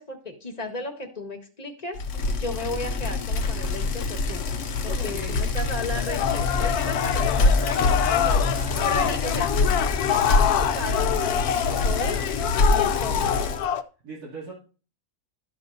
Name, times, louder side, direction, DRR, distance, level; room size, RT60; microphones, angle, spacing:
voice 1, 0.0-2.0 2.4-4.4 4.8-8.5 8.8-9.5 10.0-11.2 11.7-12.2 12.7-13.4, left 2 dB, 30° left, 2 dB, 1.4 m, -34 dB
Bicycle, 2.0-13.6, left 3 dB, 60° left, 1.1 m, -25 dB
voice 2, 4.8-5.5 6.8-7.0 8.1-9.1 10.0-10.2 11.7-11.9 14.0-14.5, right 2 dB, 85° right, -6 dB, 3.2 m, -40 dB
sound 1, 5.9-13.8, left 10 dB, 85° left, 1.1 m, -26 dB
12.5 x 6.7 x 2.6 m, 0.37 s
omnidirectional pair, 1.6 m